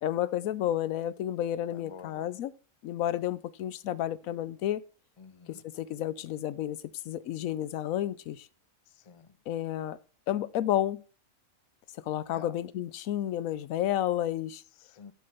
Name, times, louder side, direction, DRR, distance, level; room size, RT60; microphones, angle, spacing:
voice 1, 0.0-2.5 2.8-4.8 5.5-6.8 7.0-8.5 9.5-10.0 10.3-11.0 12.1-14.6, left 12 dB, 85° left, 1.1 m, -31 dB
voice 2, 1.7-2.3 5.2-5.6 8.9-9.3 12.3-12.6 14.8-15.1, left 7 dB, 45° left, 0.4 m, -49 dB
12.0 x 7.7 x 3.5 m
omnidirectional pair, 1.4 m